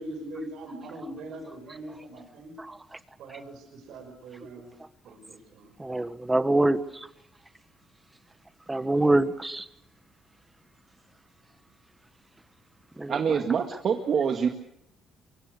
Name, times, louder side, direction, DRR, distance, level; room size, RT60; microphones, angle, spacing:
voice 1, 0.0-2.6 3.2-4.7 5.0-5.7, right 1 dB, 80° right, 3 dB, 5.6 m, -41 dB
voice 2, 5.8-6.8 8.7-9.6 13.0-13.2, right 2 dB, 15° right, 12 dB, 1.4 m, -24 dB
voice 3, 13.1-14.5, right 7 dB, 55° right, 4 dB, 1.9 m, -25 dB
24.0 x 23.0 x 6.6 m, 0.77 s
cardioid pair, 100°, 0 cm